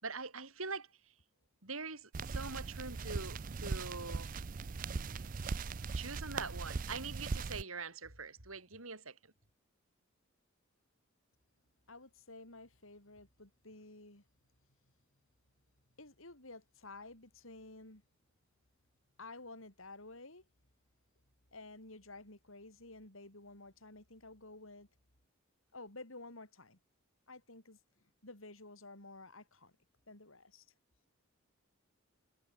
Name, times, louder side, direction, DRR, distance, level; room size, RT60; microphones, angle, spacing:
voice 1, 0.0-0.9 1.6-4.3 5.9-9.2, right 4 dB, 85° right, 6.5 m, -43 dB
sound 1, 2.1-7.6, right 4 dB, 40° right, 0.5 m, -40 dB
voice 2, 11.9-14.2 16.0-18.0 19.2-20.4 21.5-24.9 25.7-26.8 27.3-27.8 28.2-29.7 30.1-30.7, left 2 dB, 75° left, 5.6 m, -52 dB
head